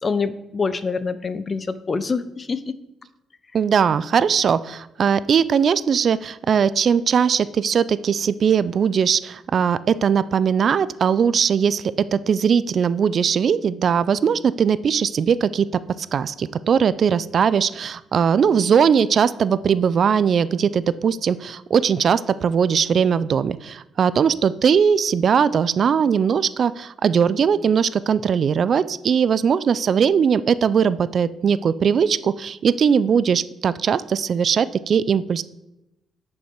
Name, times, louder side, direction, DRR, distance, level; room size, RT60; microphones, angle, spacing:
voice 1, 0.0-2.7, left 4 dB, 35° left, 14 dB, 0.6 m, -25 dB
voice 2, 3.5-15.7 16.1-35.4, right 7 dB, 55° right, 17 dB, 0.3 m, -20 dB
10.0 x 5.4 x 4.5 m, 0.92 s
cardioid pair, 90°, 0 cm